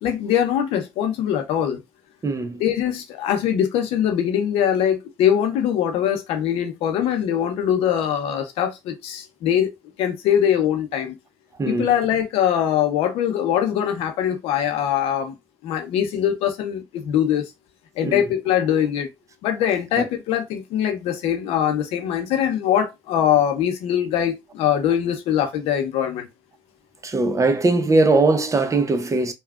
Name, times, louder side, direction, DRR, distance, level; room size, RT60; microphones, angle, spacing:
voice 1, 0.0-1.8 2.6-9.7 10.0-11.1 11.7-15.4 15.6-17.5 18.0-19.1 19.4-26.3, left 9 dB, 85° left, 0.6 m, -22 dB
voice 2, 2.2-2.6 11.6-11.9 18.0-18.2 20.0-20.1 27.0-29.3, right 3 dB, 30° right, 0.7 m, -20 dB
3.6 x 2.3 x 2.3 m
supercardioid pair, 60°, 10 cm